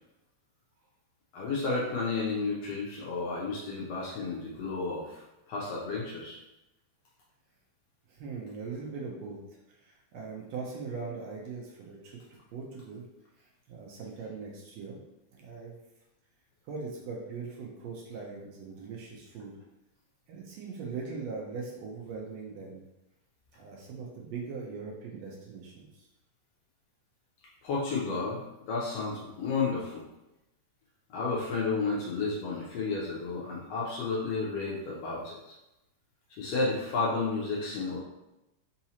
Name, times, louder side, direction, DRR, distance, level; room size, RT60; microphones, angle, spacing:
voice 1, 1.3-6.4 27.6-30.0 31.1-35.5 36.4-38.0, left 4 dB, 75° left, -4 dB, 1.6 m, -32 dB
voice 2, 8.1-9.4 9.7-13.0 13.4-15.0 15.3-15.8 16.7-19.5 20.3-22.8 23.5-26.1, right 4 dB, 75° right, -2 dB, 1.7 m, -40 dB
4.8 x 2.9 x 2.7 m, 0.93 s
omnidirectional pair, 3.3 m